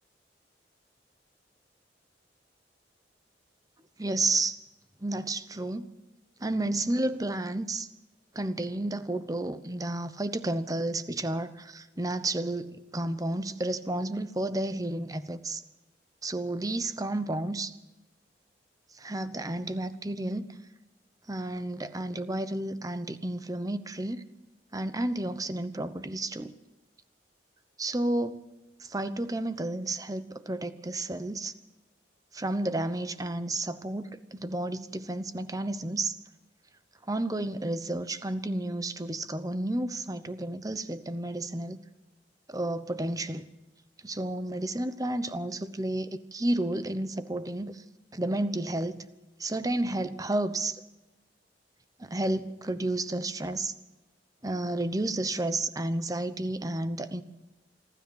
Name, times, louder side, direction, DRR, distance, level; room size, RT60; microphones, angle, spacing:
voice 1, 4.0-4.6 5.0-5.9 6.4-7.9 8.3-15.6 16.2-17.7 19.0-20.5 21.3-24.2 24.7-26.5 27.8-28.4 28.8-31.5 32.3-36.2 37.1-41.8 42.5-43.5 44.0-47.8 48.1-49.0 49.4-50.8 52.0-53.7 54.4-57.2, right 2 dB, 20° right, 12 dB, 0.9 m, -31 dB
25.5 x 13.0 x 7.9 m, 1.0 s
head